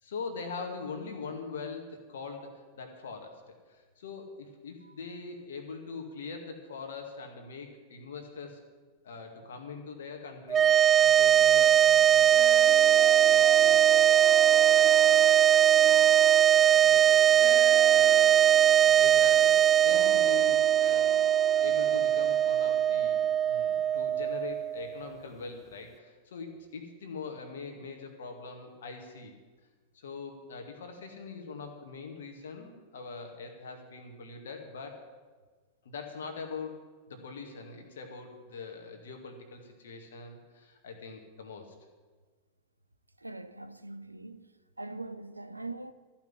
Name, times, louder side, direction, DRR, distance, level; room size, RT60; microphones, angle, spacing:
voice 1, 0.0-3.4 3.7-8.6 9.0-10.7 11.0-16.0 16.5-18.5 18.8-19.5 19.8-21.2 21.6-29.3 29.9-35.0 35.8-36.8 37.1-41.7, left 4 dB, 60° left, 2.0 m, -43 dB
sound 1, 10.5-24.9, right 10 dB, 25° right, 0.3 m, -21 dB
Harp, 12.1-23.2 23.4-23.5, right 6 dB, 40° right, 2.1 m, -41 dB
voice 2, 43.2-44.5 44.8-45.9, right 2 dB, 85° right, 0.6 m, -42 dB
14.0 x 5.9 x 9.7 m
figure-of-eight pair, 90°, 0 cm